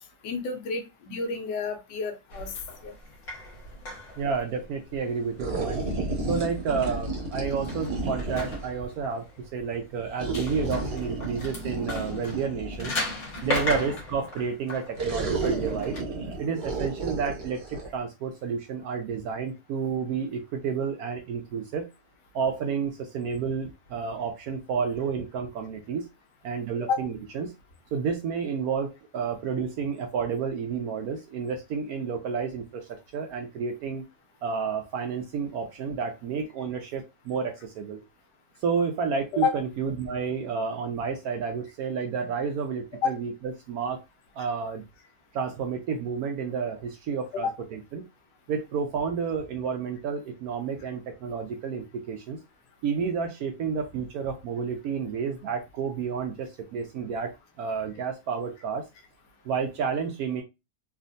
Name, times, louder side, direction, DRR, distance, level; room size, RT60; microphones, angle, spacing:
voice 1, 0.2-2.5 2.8-2.9 26.9-27.1 39.3-39.6 43.0-43.1 47.3-47.4, left 4 dB, 75° left, 4 dB, 1.3 m, -29 dB
sound 1, 2.3-16.0, left 2 dB, 50° left, 1.4 m, -38 dB
voice 2, 4.2-5.8 6.3-13.0 13.4-16.0 16.4-21.9 22.3-26.1 26.4-27.5 27.9-34.0 34.4-38.0 38.6-44.0 44.3-44.8 45.3-48.0 48.5-52.4 52.8-57.3 57.6-58.9 59.4-60.4, right 6 dB, 70° right, 5 dB, 0.9 m, -30 dB
sound 2, 5.4-8.8 10.2-14.0 15.0-17.9, right 2 dB, 45° right, 0.9 m, -32 dB
3.4 x 2.4 x 2.5 m, 0.25 s
omnidirectional pair, 1.9 m